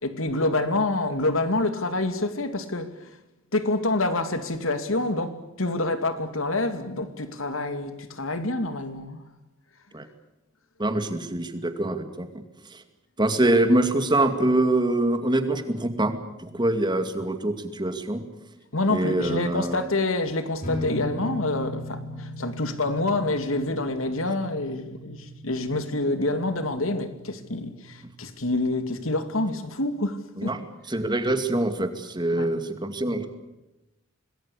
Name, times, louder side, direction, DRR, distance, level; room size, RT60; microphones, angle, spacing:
voice 1, 0.0-2.9 3.5-9.2 18.7-30.6 32.4-32.5, left 2 dB, 85° left, 2.6 m, -27 dB
voice 2, 10.8-12.4 12.7-12.8 13.2-18.2 18.9-19.8 30.4-30.6 30.9-33.3, right 1 dB, 20° right, 2.4 m, -24 dB
sound 1, 20.6-28.2, left 1 dB, 40° left, 6.6 m, -38 dB
26.5 x 20.0 x 8.6 m
head